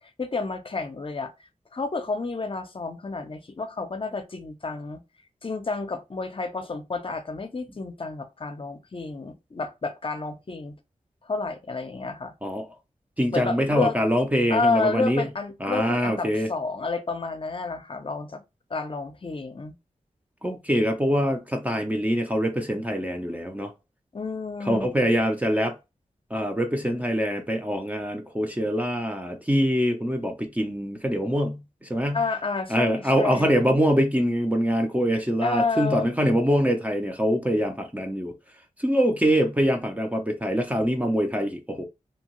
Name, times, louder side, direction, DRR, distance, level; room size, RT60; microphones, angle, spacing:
voice 1, 0.2-1.3 1.7-5.0 5.4-10.8 11.2-12.3 13.3-14.0 14.5-18.4 18.7-19.8 24.1-24.9 32.1-33.6 35.4-36.1, left 3 dB, 45° left, 0.6 m, -30 dB
voice 2, 13.2-15.3 15.6-16.5 20.4-23.7 24.7-25.8 26.3-32.2 32.7-38.3 38.8-41.8, equal, 10° right, 0.5 m, -24 dB
2.8 x 2.2 x 2.9 m
wide cardioid pair, 65°, 13 cm